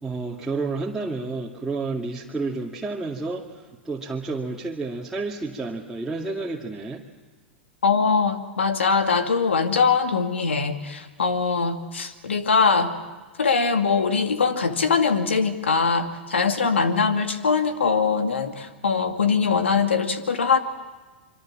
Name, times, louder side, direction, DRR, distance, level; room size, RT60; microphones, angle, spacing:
voice 1, 0.0-7.0, right 3 dB, 5° right, -4 dB, 2.3 m, -30 dB
voice 2, 7.8-12.9 13.4-20.6, left 5 dB, 90° left, 7 dB, 2.2 m, -22 dB
25.5 x 24.5 x 7.5 m, 1.2 s
hypercardioid pair, 110°, 6 cm